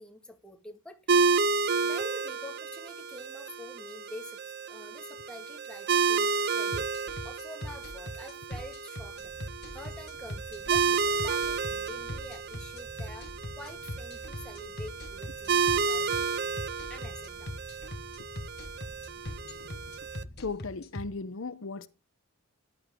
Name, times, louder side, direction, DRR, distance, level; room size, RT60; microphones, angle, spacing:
voice 1, 0.0-1.4 1.8-6.9 7.2-16.3 16.9-17.5, left 1 dB, 5° left, 2.0 m, -47 dB
sound 1, 1.1-20.2, right 5 dB, 55° right, 0.6 m, -31 dB
sound 2, 6.7-21.0, left 1 dB, 50° left, 1.5 m, -40 dB
sound 3, 9.1-20.4, equal, 30° left, 7.7 m, -52 dB
voice 2, 19.4-19.8 20.4-21.9, left 4 dB, 75° left, 0.9 m, -37 dB
14.5 x 11.0 x 3.8 m
head